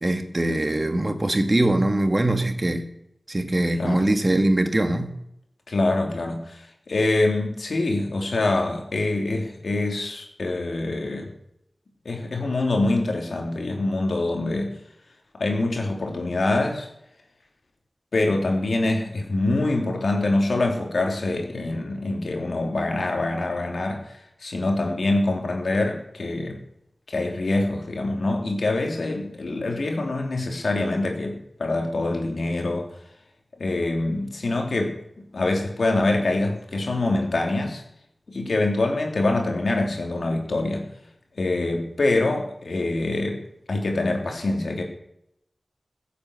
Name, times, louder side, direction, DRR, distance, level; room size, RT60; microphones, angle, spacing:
voice 1, 0.0-2.8 3.3-5.1, right 1 dB, 35° right, 1.7 m, -22 dB
voice 2, 5.7-11.3 12.0-14.7 15.4-16.9 18.1-24.1 24.4-26.6 27.1-32.9 33.6-35.0 35.3-37.8 38.3-40.9 41.4-43.4 43.7-44.8, left 2 dB, 80° left, 3.3 m, -25 dB
15.5 x 8.4 x 8.2 m
wide cardioid pair, 60°, 0 cm